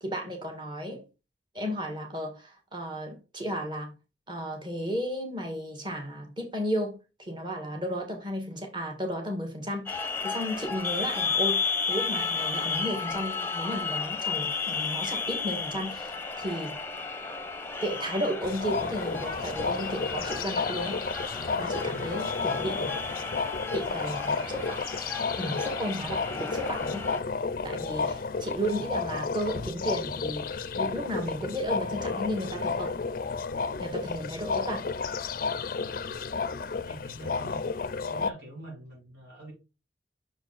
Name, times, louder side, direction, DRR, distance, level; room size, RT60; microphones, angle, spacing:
voice 1, 0.0-1.0 1.5-3.9 4.3-7.0 7.3-16.7 17.8-21.0 21.6-22.9 23.7-24.8 25.4-27.0 27.6-32.9 33.8-34.9, equal, 25° right, 1.7 m, -34 dB
sound 1, 9.9-27.2, left 5 dB, 15° left, 0.8 m, -33 dB
sound 2, 18.4-38.3, left 4 dB, 50° left, 0.4 m, -32 dB
voice 2, 23.9-24.4 33.9-34.3 35.8-36.1 36.8-37.7 38.1-39.5, right 1 dB, 90° right, 3.7 m, -46 dB
6.6 x 4.4 x 4.0 m
head